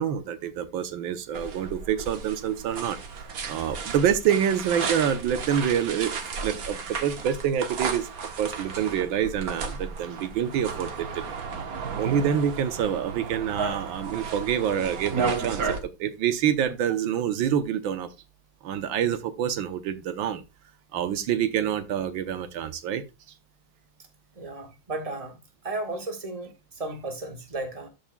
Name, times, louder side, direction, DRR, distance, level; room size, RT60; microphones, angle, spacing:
voice 1, 0.0-3.0 3.5-8.1 8.4-11.2 11.9-18.1 18.6-20.4 20.9-23.0, right 9 dB, 85° right, 1.6 m, -27 dB
sound 1, 1.3-15.8, right 5 dB, 55° right, 1.5 m, -33 dB
voice 2, 24.4-25.4 25.6-27.9, right 2 dB, 20° right, 1.6 m, -34 dB
13.0 x 6.0 x 2.2 m
omnidirectional pair, 2.1 m